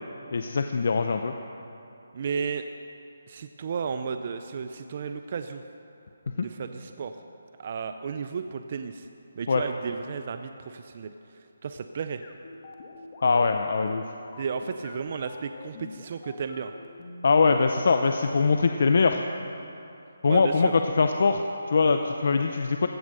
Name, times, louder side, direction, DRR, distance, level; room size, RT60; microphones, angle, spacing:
voice 1, 0.3-1.3 6.4-6.5 9.5-9.6 13.2-14.0 17.2-19.2 20.2-22.9, left 4 dB, 50° left, 6 dB, 0.6 m, -22 dB
voice 2, 2.1-2.7 3.3-5.6 6.3-7.1 7.6-9.1 9.4-11.1 11.6-12.2 14.4-16.7 20.3-20.7, right 6 dB, 30° right, 8 dB, 0.4 m, -33 dB
sound 1, 12.2-17.4, left 3 dB, 30° left, 1.2 m, -45 dB
16.0 x 9.7 x 6.7 m, 2.8 s
hypercardioid pair, 175°, 0 cm